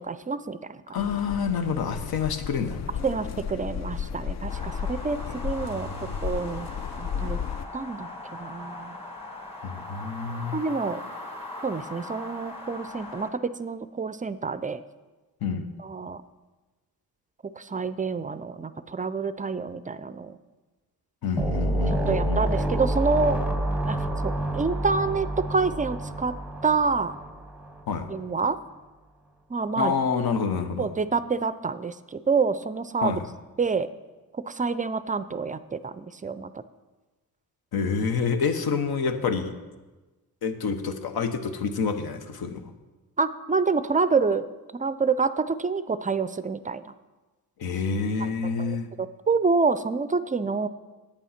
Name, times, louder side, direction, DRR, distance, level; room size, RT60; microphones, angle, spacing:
voice 1, 0.0-0.8 3.0-5.2 5.4-5.9 6.2-6.7 7.0-7.4 7.7-8.1 8.4-9.0 10.5-11.0 11.6-14.8 15.8-16.2 17.6-20.4 21.9-23.4 23.9-24.0 24.2-26.3 26.6-27.1 28.1-28.6 29.5-29.9 30.8-33.1 33.6-33.9 34.5-36.6 43.2-44.4 44.7-46.9 48.2-48.3 48.6-50.7, right 4 dB, 20° right, 14 dB, 0.4 m, -27 dB
voice 2, 0.9-2.8 5.6-6.2 9.6-10.6 15.4-15.7 21.2-22.4 27.9-28.1 29.8-30.9 33.0-33.2 37.7-39.5 40.4-42.6 47.6-48.9, left 5 dB, 75° left, 8 dB, 1.0 m, -28 dB
sound 1, 1.0-7.7, left 7 dB, 50° left, 0.4 m, -34 dB
sound 2, 4.5-13.3, left 2 dB, 15° left, 1.8 m, -40 dB
sound 3, 21.4-27.8, right 1 dB, 5° right, 0.8 m, -28 dB
8.5 x 8.3 x 5.7 m, 1.2 s
cardioid pair, 85°, 37 cm